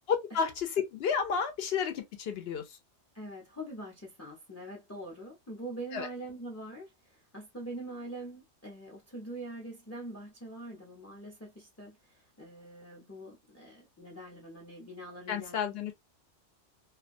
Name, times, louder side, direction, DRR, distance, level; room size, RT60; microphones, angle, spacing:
voice 1, 0.1-2.8 5.9-6.1 15.3-15.9, left 6 dB, 65° left, 0.7 m, -31 dB
voice 2, 3.1-15.6, right 1 dB, 20° left, 0.4 m, -44 dB
2.3 x 2.2 x 2.5 m
omnidirectional pair, 1.3 m